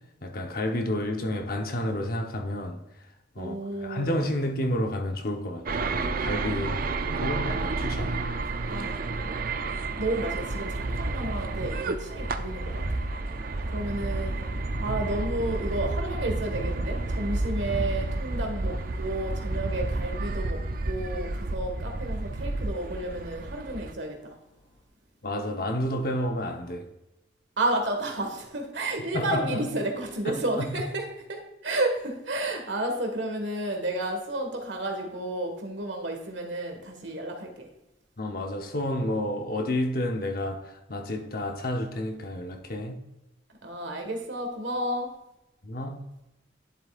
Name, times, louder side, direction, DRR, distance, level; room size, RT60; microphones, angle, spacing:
voice 1, 0.2-2.8 3.4-6.8 7.2-8.2 25.2-26.9 29.1-29.7 30.3-30.7 38.2-43.0 45.6-46.0, left 1 dB, 55° left, 0.9 m, -30 dB
voice 2, 3.4-4.3 8.7-9.0 10.0-13.0 13.7-14.4 14.8-20.6 20.8-24.3 27.6-31.0 31.3-37.7 43.6-45.1, right 1 dB, 80° right, 1.7 m, -31 dB
sound 1, 5.7-23.9, right 3 dB, 50° right, 0.5 m, -31 dB
sound 2, 9.5-24.8, equal, 70° left, 2.8 m, -50 dB
11.0 x 7.4 x 2.5 m
head